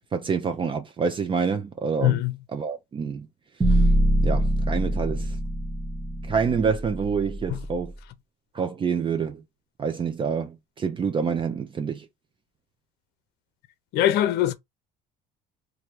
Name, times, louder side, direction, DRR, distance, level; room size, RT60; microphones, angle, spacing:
voice 1, 0.1-2.2 2.5-3.3 3.7-3.9 4.2-5.4 6.2-7.9 8.5-9.4 9.8-12.1, right 6 dB, 30° right, 0.6 m, -27 dB
voice 2, 2.0-2.3 7.5-7.6 13.9-14.5, left 13 dB, 70° left, 0.6 m, -21 dB
sound 1, 3.6-7.8, right 1 dB, 10° right, 1.2 m, -24 dB
3.1 x 2.6 x 4.5 m
cardioid pair, 130°, 17 cm